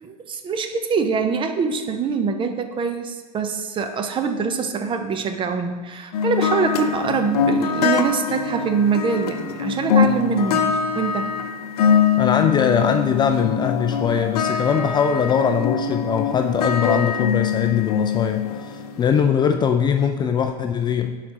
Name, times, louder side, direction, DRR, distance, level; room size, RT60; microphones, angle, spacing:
voice 1, 0.0-11.3, right 5 dB, 25° right, 7 dB, 0.7 m, -24 dB
sound 1, 6.1-19.2, left 7 dB, 70° left, 0.6 m, -23 dB
voice 2, 12.2-21.2, left 7 dB, 20° left, 6 dB, 0.4 m, -21 dB
11.5 x 5.0 x 2.9 m, 1.3 s
hypercardioid pair, 100°, 20 cm